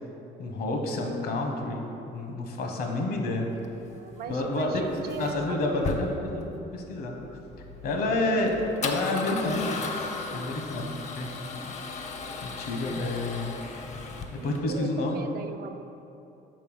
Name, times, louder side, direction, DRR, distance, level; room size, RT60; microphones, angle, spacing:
voice 1, 0.4-3.5 4.3-4.8 5.2-7.2 7.8-8.5 8.8-9.9 10.3-11.7 12.4-13.5 14.4-15.2, left 2 dB, 65° left, 2 dB, 1.0 m, -29 dB
Male speech man speaking / Car / Engine starting, 3.5-14.6, left 4 dB, 45° left, 0.6 m, -37 dB
voice 2, 4.0-5.9 10.3-10.5 10.8-11.0 14.3-15.8, right 7 dB, 65° right, 6 dB, 0.4 m, -39 dB
5.4 x 4.5 x 5.5 m, 2.8 s
cardioid pair, 110°, 17 cm